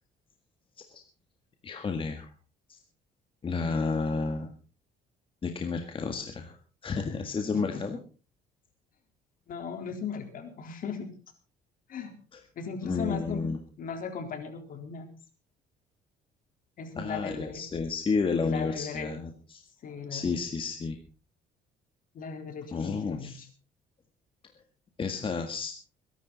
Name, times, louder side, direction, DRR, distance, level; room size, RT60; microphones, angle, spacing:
voice 1, 1.6-2.3 2.7-2.8 3.4-4.5 5.4-6.6 6.8-8.0 12.3-12.4 12.8-13.6 17.0-19.6 20.1-21.0 22.7-23.4 25.0-25.7, left 4 dB, 30° left, 5 dB, 1.8 m, -31 dB
voice 2, 7.5-7.9 9.5-11.1 11.9-12.1 12.6-13.4 13.8-15.1 16.8-17.6 18.4-19.2 19.8-20.4 22.1-23.5, left 6 dB, 55° left, 5 dB, 3.9 m, -37 dB
21.5 x 11.5 x 4.1 m, 0.36 s
cardioid pair, 110°, 17 cm